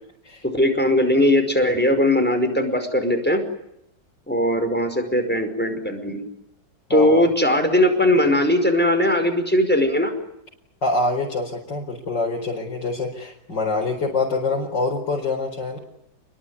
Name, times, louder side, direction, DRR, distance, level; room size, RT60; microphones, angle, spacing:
voice 1, 0.4-3.4 4.3-6.3 6.9-10.1, left 1 dB, 5° left, 6 dB, 5.1 m, -19 dB
voice 2, 6.9-7.3 10.8-15.8, left 3 dB, 60° left, -2 dB, 5.2 m, -25 dB
28.5 x 21.5 x 9.7 m, 0.79 s
omnidirectional pair, 2.1 m